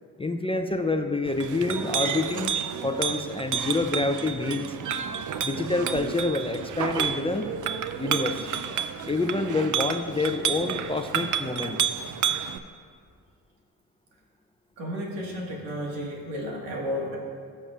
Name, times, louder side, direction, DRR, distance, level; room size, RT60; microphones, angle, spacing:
voice 1, 0.2-2.5 2.8-4.8 5.4-7.5 8.0-8.5 9.0-11.8, left 2 dB, 15° left, 6 dB, 0.5 m, -27 dB
Chink clink, 1.2-12.6, right 8 dB, 45° right, 0.6 m, -30 dB
voice 2, 14.8-17.2, equal, 75° right, -2 dB, 1.8 m, -32 dB
13.0 x 7.3 x 2.5 m, 2.1 s
hypercardioid pair, 50°, 43 cm